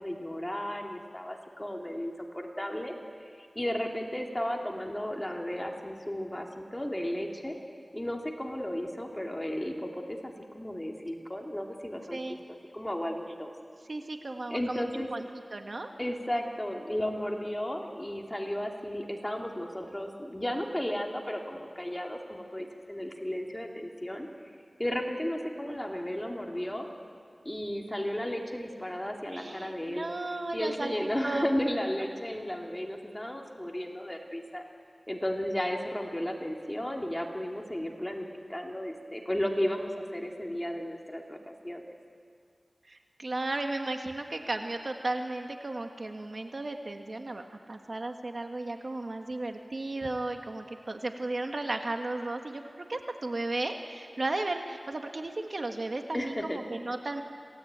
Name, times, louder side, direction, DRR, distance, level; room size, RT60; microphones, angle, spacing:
voice 1, 0.0-2.9 3.2-7.6 7.9-13.5 14.5-15.1 16.0-24.3 24.8-26.9 27.4-30.1 30.5-34.6 35.1-41.4 41.6-41.8 56.1-56.6, equal, 15° left, 1 dB, 2.7 m, -34 dB
voice 2, 13.9-15.3 15.5-15.9 25.6-25.7 29.3-31.5 42.9-52.6 52.9-57.2, right 2 dB, 55° right, 4 dB, 1.7 m, -35 dB
27.0 x 18.0 x 8.9 m, 2.3 s
wide cardioid pair, 70°, 0 cm